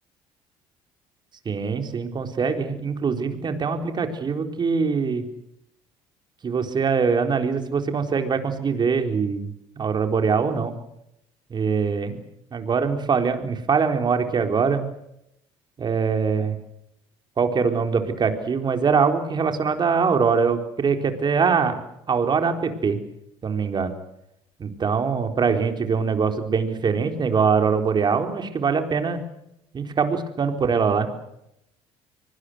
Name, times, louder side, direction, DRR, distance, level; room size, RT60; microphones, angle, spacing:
voice 1, 1.5-5.2 6.4-9.5 9.8-10.7 11.5-12.2 12.5-14.9 15.8-16.6 17.4-21.8 22.1-23.0 23.4-23.9 24.6-29.2 29.7-31.1, right 5 dB, 40° right, 6 dB, 4.1 m, -23 dB
25.0 x 20.5 x 8.0 m, 0.81 s
supercardioid pair, 80°, 11 cm